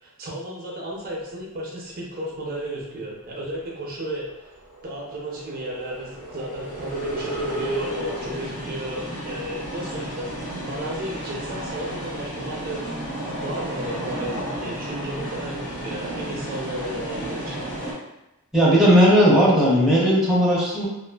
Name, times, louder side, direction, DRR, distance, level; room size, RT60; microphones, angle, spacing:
voice 1, 0.0-4.3 4.8-10.3 10.7-12.8 13.4-17.6, right 1 dB, 45° right, -3 dB, 0.5 m, -33 dB
sound 1, 3.8-17.9, right 1 dB, 70° left, 1.4 m, -32 dB
voice 2, 18.5-20.8, equal, ahead, -7 dB, 0.6 m, -16 dB
2.4 x 2.4 x 2.2 m, 0.92 s
head